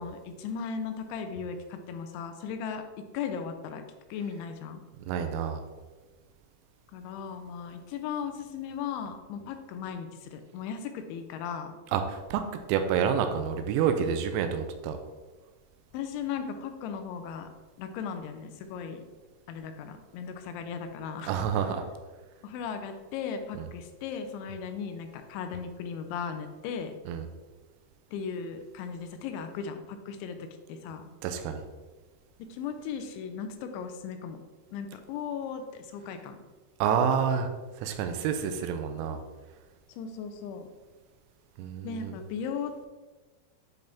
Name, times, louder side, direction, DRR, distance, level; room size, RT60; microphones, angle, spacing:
voice 1, 0.0-2.9 3.1-3.8 4.1-4.8 6.9-11.8 15.9-17.5 17.8-19.0 19.5-21.3 22.4-26.9 28.1-30.4 30.7-31.1 32.4-34.4 34.7-36.4 39.9-40.7 41.8-42.9, left 6 dB, 90° left, 7 dB, 3.1 m, -37 dB
voice 2, 5.1-5.6 11.9-12.4 12.7-15.0 21.3-21.8 27.1-27.2 31.2-31.6 36.8-37.5 37.8-39.2 41.6-42.1, right 7 dB, 85° right, 7 dB, 3.0 m, -28 dB
10.0 x 4.0 x 3.5 m, 1.3 s
omnidirectional pair, 5.3 m